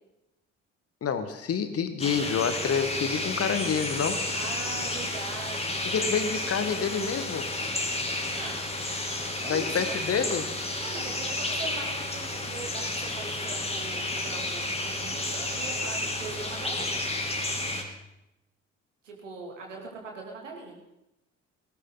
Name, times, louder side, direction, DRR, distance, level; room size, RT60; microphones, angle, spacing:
voice 1, 1.0-4.2 5.8-7.5 9.5-10.5, left 6 dB, 40° left, 10 dB, 1.5 m, -28 dB
sound 1, 2.0-17.8, left 2 dB, 15° left, 2.7 m, -31 dB
voice 2, 4.3-5.8 8.3-8.6 9.4-10.0 10.8-17.0 19.0-20.8, right 4 dB, 80° right, 0 dB, 2.8 m, -41 dB
18.0 x 17.0 x 3.9 m, 0.90 s
figure-of-eight pair, 45°, 36 cm